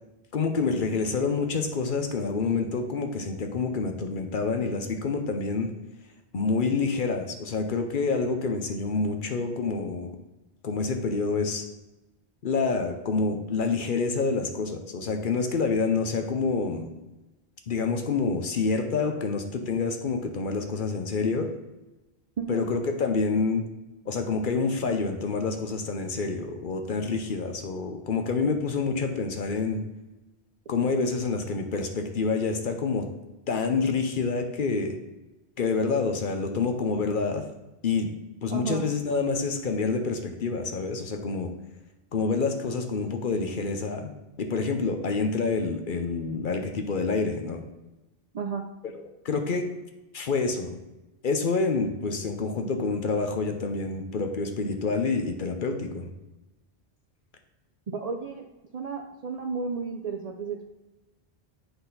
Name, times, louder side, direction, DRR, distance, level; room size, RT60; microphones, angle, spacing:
voice 1, 0.3-5.7 6.3-10.2 10.6-11.6 12.4-16.9 17.7-21.5 22.5-23.7 24.1-29.8 30.7-33.1 33.5-35.0 35.6-37.4 37.8-38.1 38.4-41.5 42.1-44.1 44.4-47.6 49.2-49.7 50.1-50.8 51.2-56.1, left 4 dB, 55° left, 5 dB, 0.8 m, -27 dB
voice 2, 22.4-22.7 38.5-38.8 48.3-48.7 57.9-58.5 58.7-60.7, right 5 dB, 55° right, 3 dB, 0.4 m, -32 dB
7.9 x 4.1 x 3.9 m, 1.0 s
omnidirectional pair, 1.1 m